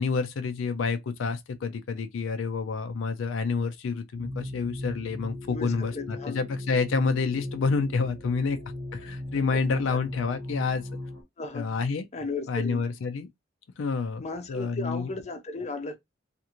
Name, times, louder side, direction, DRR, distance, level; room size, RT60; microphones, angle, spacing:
voice 1, 0.0-8.6 8.9-10.9 11.5-12.0 12.5-13.3 13.8-14.2 14.5-15.1, left 4 dB, 85° left, 0.4 m, -28 dB
sound 1, 4.1-11.2, left 1 dB, 85° right, 1.2 m, -38 dB
voice 2, 5.5-6.4 9.0-9.6 11.4-11.7 12.1-12.9 14.2-16.0, left 3 dB, 35° left, 0.6 m, -36 dB
2.5 x 2.5 x 2.8 m
head